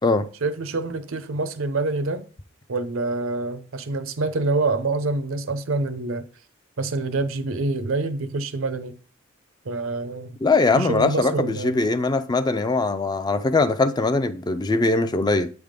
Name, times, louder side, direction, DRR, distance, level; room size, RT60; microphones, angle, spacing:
voice 1, 0.4-2.2 2.7-6.2 6.8-9.0 9.7-10.4 10.7-11.8, right 3 dB, 80° right, 0.7 m, -26 dB
voice 2, 10.4-15.5, left 3 dB, 20° left, 0.4 m, -21 dB
8.0 x 3.6 x 5.1 m
head